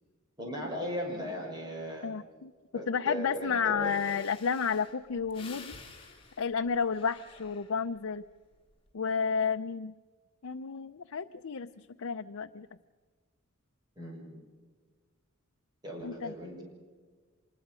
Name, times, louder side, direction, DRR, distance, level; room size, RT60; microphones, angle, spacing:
voice 1, 0.4-2.1 2.7-4.0 14.0-14.4 15.8-16.6, equal, 20° right, 0 dB, 6.6 m, -37 dB
voice 2, 2.0-2.5 2.9-5.8 6.4-8.2 8.9-9.9 10.4-12.7 16.0-16.3, left 6 dB, 85° left, 7 dB, 0.6 m, -31 dB
Breathing, 3.5-3.6 3.8-8.0 8.5-8.9, left 4 dB, 30° left, 3.5 m, -51 dB
25.5 x 20.5 x 6.2 m, 1.5 s
head